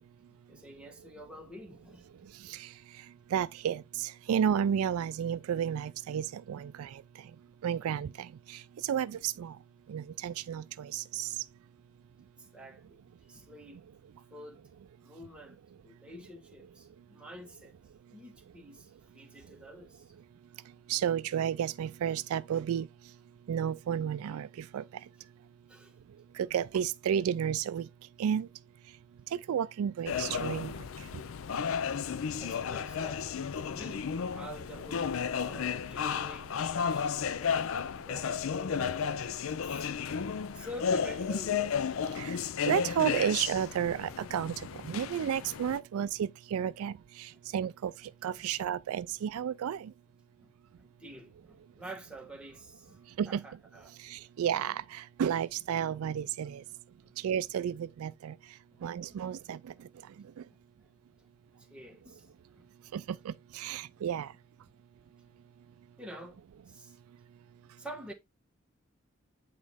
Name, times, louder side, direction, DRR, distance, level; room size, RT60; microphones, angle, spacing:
voice 1, 0.3-2.3 12.4-13.8 14.3-14.7 15.0-17.7 18.1-20.1 25.7-25.9 32.3-33.4 33.6-40.0 40.5-41.6 43.2-43.3 47.3-47.4 48.4-48.5 50.4-50.5 50.8-54.3 56.6-56.7 57.0-57.2 58.7-58.8 59.4-59.5 60.5-60.9 61.2-61.3 61.5-62.7 66.0-67.0 67.8-68.1, equal, 5° right, 1.2 m, -49 dB
voice 2, 3.3-7.0 7.6-9.5 9.9-11.3 20.9-22.9 23.5-24.8 26.4-27.9 28.2-28.5 29.5-30.7 42.2-42.4 42.7-47.9 48.2-49.9 53.2-53.4 54.0-56.6 57.2-58.3 58.8-59.6 62.9-64.3, right 9 dB, 85° right, 0.3 m, -32 dB
sound 1, 30.1-45.8, left 7 dB, 70° left, 0.4 m, -33 dB
8.5 x 4.0 x 3.5 m
head